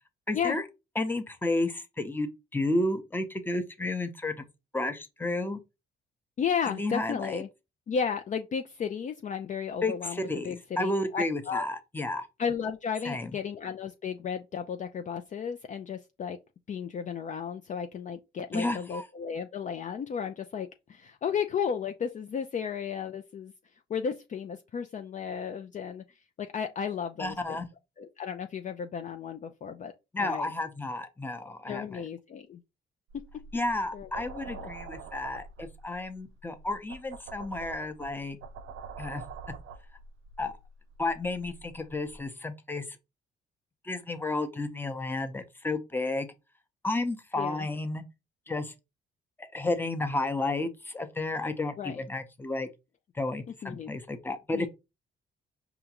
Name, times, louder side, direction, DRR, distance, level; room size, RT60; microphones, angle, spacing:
voice 1, 0.3-0.6 1.0-4.4 4.7-5.6 6.7-7.4 9.8-12.3 13.0-13.3 18.5-19.1 27.2-27.7 30.1-32.0 33.5-38.4 39.0-39.2 40.4-40.6 41.0-42.9 43.8-46.3 46.8-48.0 48.5-48.7 49.4-52.7 53.1-54.7, left 2 dB, 10° left, 0.7 m, -32 dB
voice 2, 6.4-7.5 7.9-11.7 12.4-16.4 16.7-23.5 23.9-26.0 26.4-27.6 28.0-29.9 30.2-30.5 31.7-32.6 33.9-34.1 34.5-34.7 47.4-47.7 51.8-52.0 53.6-53.9 54.5-54.7, left 7 dB, 40° left, 0.4 m, -34 dB
sound 1, 33.1-42.2, right 5 dB, 80° right, 0.4 m, -46 dB
4.9 x 2.4 x 2.9 m
cardioid pair, 90°, 20 cm